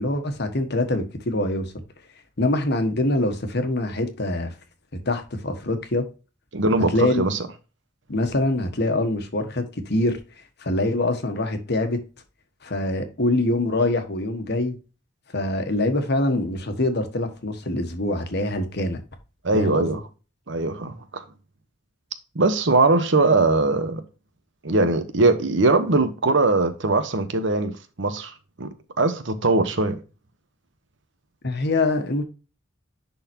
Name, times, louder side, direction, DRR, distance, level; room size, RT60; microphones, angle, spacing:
voice 1, 0.0-1.7 2.4-4.5 5.1-6.0 6.9-7.2 8.1-10.2 10.6-12.0 12.6-14.8 15.3-19.0 19.5-20.0 31.4-32.2, left 2 dB, 60° left, 1.4 m, -24 dB
voice 2, 6.5-7.4 19.4-20.0 20.5-21.2 22.3-24.0 24.6-27.7 28.0-28.7 29.0-30.0, right 3 dB, 70° right, 1.0 m, -21 dB
10.5 x 4.0 x 2.9 m
head